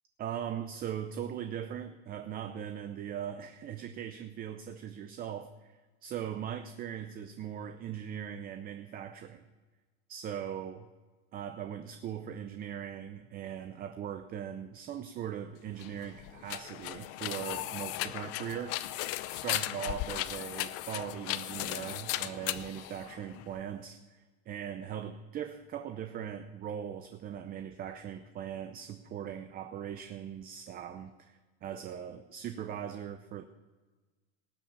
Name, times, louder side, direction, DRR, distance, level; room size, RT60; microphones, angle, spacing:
voice 1, 0.2-5.7 6.0-9.4 10.1-10.9 11.3-18.9 19.3-33.5, right 9 dB, 30° right, 0.6 m, -40 dB
sound 1, 15.7-23.6, left 15 dB, 50° left, 0.6 m, -37 dB
19.0 x 7.6 x 5.2 m
supercardioid pair, 145°, 33 cm